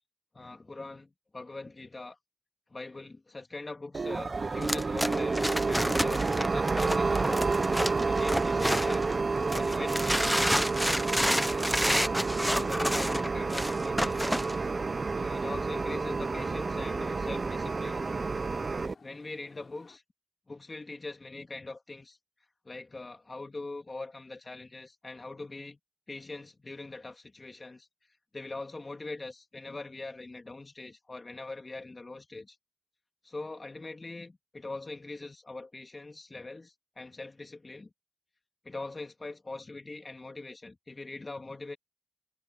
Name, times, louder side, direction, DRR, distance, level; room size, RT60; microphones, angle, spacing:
voice 1, 0.3-2.2 2.7-7.4 8.0-9.1 9.5-10.5 11.3-11.7 12.3-14.4 15.1-18.0 19.0-20.0 20.5-22.2 22.6-25.8 26.1-27.9 28.3-32.6 33.2-37.9 38.6-41.8, left 3 dB, 40° left, 3.1 m, -42 dB
sound 1, 3.9-18.9, right 3 dB, 55° right, 0.6 m, -30 dB
sound 2, 4.6-9.1 9.5-14.6, equal, ahead, 0.8 m, -29 dB
sound 3, 11.6-20.0, left 5 dB, 85° left, 3.9 m, -59 dB
wide cardioid pair, 85°, 0 cm